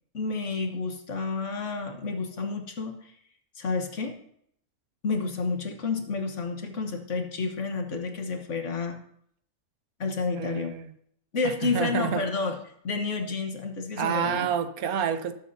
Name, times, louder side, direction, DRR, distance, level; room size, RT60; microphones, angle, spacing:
voice 1, 0.1-2.9 3.6-4.1 5.0-9.0 10.0-10.8 11.3-12.6 12.8-14.5, left 4 dB, 55° left, 5 dB, 1.5 m, -30 dB
voice 2, 10.3-10.9 11.4-12.2 14.0-15.3, right 8 dB, 85° right, 10 dB, 1.3 m, -28 dB
18.0 x 7.5 x 2.7 m, 0.68 s
omnidirectional pair, 1.5 m